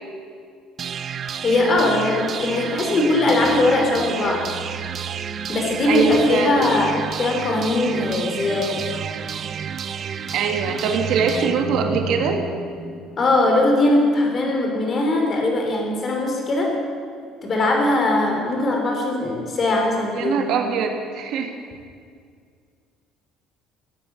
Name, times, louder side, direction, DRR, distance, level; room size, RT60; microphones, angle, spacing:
sound 1, 0.8-12.7, right 7 dB, 35° right, 0.6 m, -31 dB
voice 1, 1.4-4.5 5.5-8.8 13.2-16.8 17.4-20.5, left 2 dB, 30° left, 1 dB, 3.4 m, -20 dB
voice 2, 5.9-6.6 10.3-12.4 20.1-21.6, right 6 dB, 55° right, 4 dB, 1.5 m, -22 dB
sound 2, 9.9-13.8, equal, ahead, 2.9 m, -33 dB
17.0 x 9.4 x 8.6 m, 2.1 s
cardioid pair, 165°, 0 cm